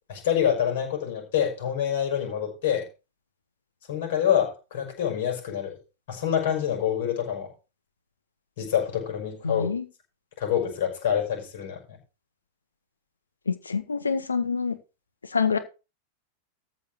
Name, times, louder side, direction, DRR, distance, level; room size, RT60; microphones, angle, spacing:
voice 1, 0.1-2.9 3.9-5.8 6.1-7.5 8.6-9.8 10.4-12.0, left 9 dB, 55° left, 5.7 m, -26 dB
voice 2, 9.4-9.8 13.5-14.8 15.3-15.6, left 5 dB, 75° left, 1.6 m, -26 dB
14.0 x 5.0 x 6.4 m
figure-of-eight pair, 90°, 0 cm